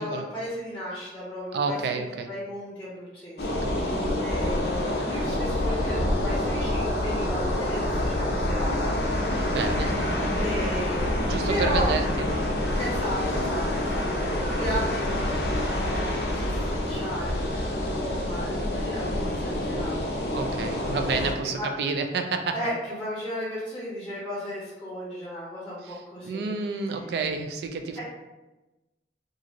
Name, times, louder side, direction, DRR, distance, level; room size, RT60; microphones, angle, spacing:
voice 1, 0.0-9.0 10.4-11.1 11.5-11.9 12.7-14.1 14.3-21.0 21.4-21.7 22.5-26.5, equal, 10° left, -9 dB, 0.6 m, -35 dB
voice 2, 1.5-2.3 3.5-3.8 9.4-10.0 11.2-12.4 20.3-22.6 25.8-28.0, right 4 dB, 65° right, 6 dB, 0.3 m, -30 dB
sound 1, 3.4-21.3, left 1 dB, 60° left, 0.6 m, -27 dB
2.5 x 2.5 x 2.9 m, 1.1 s
head